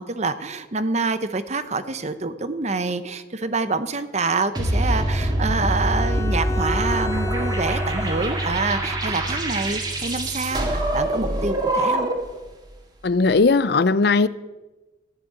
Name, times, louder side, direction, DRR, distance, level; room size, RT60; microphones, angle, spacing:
voice 1, 0.0-12.1, right 3 dB, 40° right, 0.9 m, -26 dB
sound 1, 4.5-12.4, right 1 dB, 25° right, 2.1 m, -24 dB
Bowed string instrument, 5.7-9.2, left 1 dB, 20° left, 0.7 m, -32 dB
voice 2, 13.0-14.3, left 4 dB, 60° left, 0.5 m, -18 dB
14.5 x 6.9 x 9.1 m
head